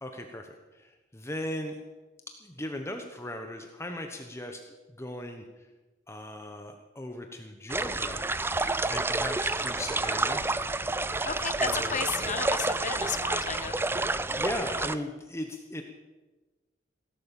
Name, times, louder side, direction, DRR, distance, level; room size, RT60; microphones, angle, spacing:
voice 1, 0.0-1.8 2.4-4.6 5.0-5.4 6.1-8.3 8.9-10.5 11.6-12.0 14.3-15.8, left 1 dB, 15° left, 4 dB, 1.1 m, -37 dB
sound 1, 7.7-15.0, right 2 dB, 10° right, 0.5 m, -29 dB
voice 2, 11.3-13.8, left 6 dB, 40° left, 10 dB, 1.2 m, -33 dB
17.0 x 12.0 x 7.1 m, 1.2 s
head